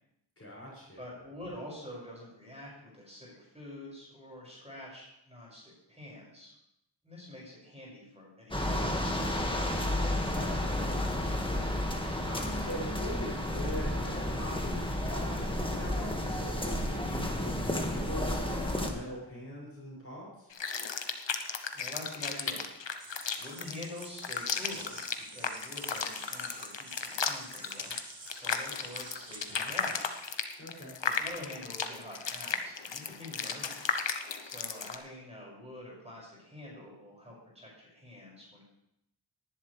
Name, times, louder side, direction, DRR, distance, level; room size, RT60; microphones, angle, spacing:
voice 1, 0.4-1.1 10.3-11.8 12.2-20.5 30.6-31.0, equal, 30° left, -5 dB, 6.2 m, -42 dB
voice 2, 1.0-6.5 7.0-9.6 21.7-22.7 23.0-25.0 25.3-28.0 28.3-29.9 31.0-33.9 34.4-38.7, left 1 dB, 15° right, -4 dB, 6.2 m, -46 dB
sound 1, 8.5-18.9, left 1 dB, 10° left, 1.8 m, -32 dB
sound 2, 20.5-35.0, left 6 dB, 75° left, 1.1 m, -35 dB
sound 3, 23.0-30.4, right 3 dB, 80° right, 2.3 m, -50 dB
19.0 x 11.0 x 3.4 m, 0.82 s
wide cardioid pair, 75°, 44 cm